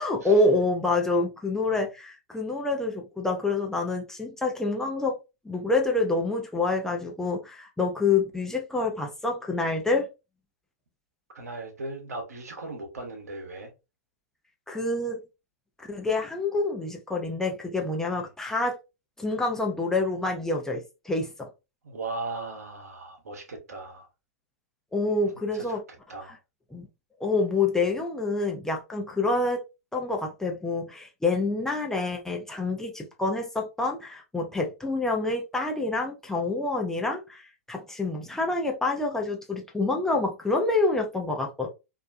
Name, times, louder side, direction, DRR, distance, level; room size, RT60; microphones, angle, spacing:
voice 1, 0.0-5.2 5.4-10.1 14.7-15.2 15.8-18.8 19.2-21.5 24.9-25.8 26.2-26.4 26.7-26.9 27.2-29.6 29.9-41.7, left 3 dB, 5° left, 0.5 m, -27 dB
voice 2, 11.3-13.7 18.1-18.3 21.8-24.1 25.5-25.8 26.1-26.4, right 3 dB, 80° right, 1.0 m, -38 dB
2.6 x 2.1 x 2.6 m
figure-of-eight pair, 105°, 8 cm